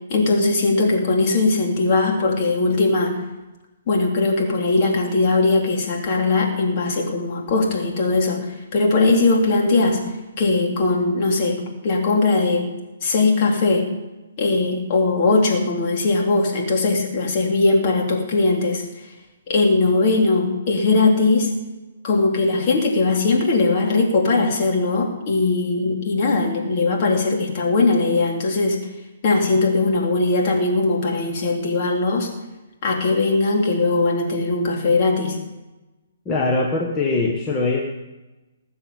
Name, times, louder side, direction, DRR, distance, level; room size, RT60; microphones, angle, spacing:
voice 1, 0.1-3.2 3.9-8.5 8.7-10.0 10.4-12.7 13.0-13.9 14.4-18.8 19.5-21.5 22.0-28.8 29.2-32.3 32.8-35.3, left 3 dB, 40° left, 0 dB, 3.4 m, -19 dB
voice 2, 36.2-37.8, left 3 dB, 20° left, -2 dB, 1.6 m, -21 dB
19.5 x 7.1 x 7.2 m, 1.1 s
hypercardioid pair, 140°, 0 cm